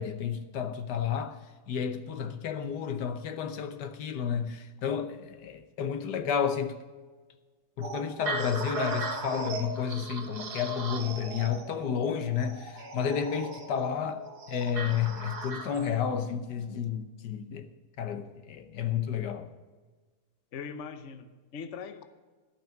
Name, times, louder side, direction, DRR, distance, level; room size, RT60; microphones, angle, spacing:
voice 1, 0.0-1.4 1.7-6.8 7.8-17.7 18.0-19.5, left 7 dB, 80° left, 1.5 m, -31 dB
sound 1, 7.8-16.0, right 3 dB, 70° right, 2.0 m, -38 dB
voice 2, 20.5-22.0, left 6 dB, 50° left, 1.1 m, -41 dB
12.5 x 5.7 x 8.9 m
omnidirectional pair, 1.8 m